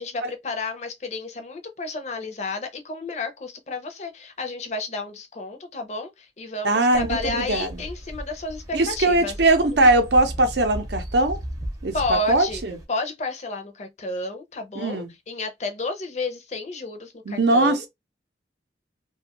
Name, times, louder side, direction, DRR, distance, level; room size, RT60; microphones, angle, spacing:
voice 1, 0.0-9.3 9.7-9.9 11.9-12.6 12.9-17.8, left 3 dB, 40° left, 0.5 m, -31 dB
voice 2, 6.6-7.7 8.7-11.4 11.8-12.8 14.8-15.1 17.3-17.9, right 2 dB, 65° right, 0.6 m, -20 dB
sound 1, 6.9-12.8, equal, 20° right, 0.6 m, -36 dB
2.5 x 2.3 x 2.8 m
head